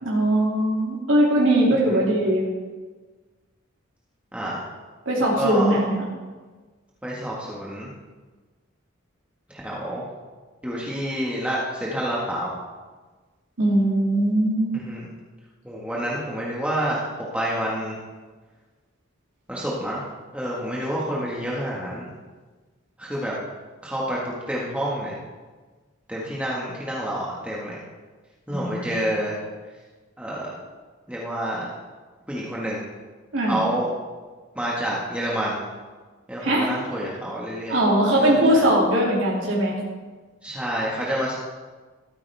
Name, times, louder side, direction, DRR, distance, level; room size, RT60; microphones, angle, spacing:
voice 1, 0.0-2.4 5.1-6.0 13.6-14.7 28.5-29.0 33.3-33.6 36.4-36.7 37.7-39.8, right 1 dB, 65° right, -6 dB, 2.7 m, -20 dB
voice 2, 5.2-5.8 7.0-7.9 9.5-10.1 10.6-12.6 14.7-15.1 15.7-17.0 17.3-18.0 19.5-20.0 20.3-22.1 23.0-23.4 23.8-25.2 26.1-27.8 28.5-29.4 30.2-30.5 31.1-31.7 32.3-32.8 33.5-33.9 34.6-35.6 36.3-37.8 38.2-38.6 40.4-41.4, equal, 5° right, -6 dB, 1.7 m, -28 dB
14.0 x 13.5 x 3.5 m, 1.4 s
head